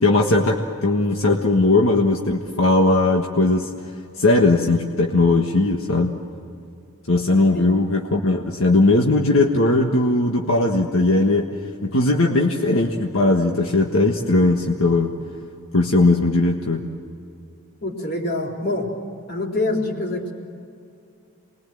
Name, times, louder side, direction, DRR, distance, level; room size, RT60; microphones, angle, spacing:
voice 1, 0.0-3.7 4.2-6.1 7.1-11.5 11.8-15.1 15.7-16.8, left 2 dB, 80° left, 1 dB, 1.6 m, -18 dB
voice 2, 17.8-18.9 19.3-20.3, left 2 dB, 50° left, 0 dB, 4.0 m, -25 dB
28.5 x 21.5 x 7.7 m, 2.5 s
head